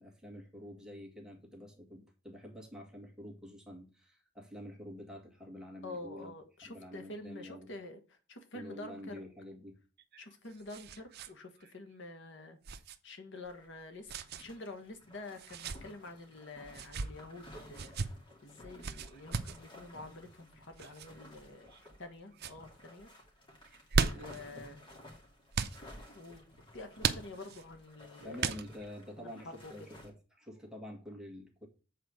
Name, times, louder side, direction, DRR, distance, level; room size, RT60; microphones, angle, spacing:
voice 1, 0.0-6.3 6.6-7.7 8.5-9.8 18.5-18.6 24.1-24.4 28.2-31.7, left 1 dB, 5° right, 1.8 m, -48 dB
voice 2, 5.8-9.2 10.2-12.6 13.0-14.1 14.4-17.9 18.4-21.7 22.0-23.1 24.0-24.9 26.1-26.4 26.7-28.5 29.2-29.9, left 2 dB, 65° left, 1.4 m, -48 dB
sound 1, 10.0-11.3 11.6-11.7 12.6-13.0 14.1-14.4 15.4-15.8 16.7-17.1 17.7-18.1 18.8-19.6 20.8-21.1 21.7-22.1 22.3-22.6 23.6-24.4 25.5-25.8 27.0-27.6 28.4-28.9, right 5 dB, 55° right, 0.7 m, -35 dB
sound 2, 13.4-13.8 14.1-30.1, left 1 dB, 25° left, 2.4 m, -55 dB
7.9 x 4.4 x 6.4 m
head